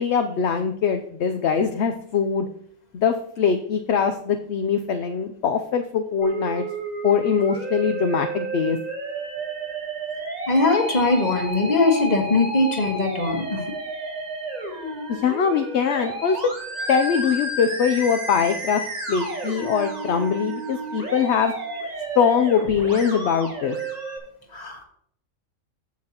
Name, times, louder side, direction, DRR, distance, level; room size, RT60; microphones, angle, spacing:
voice 1, 0.0-2.5 2.9-6.6 7.0-8.8 15.1-16.5 16.9-18.8 19.1-21.5 22.2-23.8, left 6 dB, 65° left, 7 dB, 0.9 m, -22 dB
Musical instrument, 6.2-24.2, right 2 dB, 30° right, 1.9 m, -32 dB
voice 2, 10.5-13.6 24.5-24.8, left 2 dB, 30° left, 3 dB, 1.6 m, -21 dB
15.0 x 5.8 x 2.9 m, 0.65 s
omnidirectional pair, 1.4 m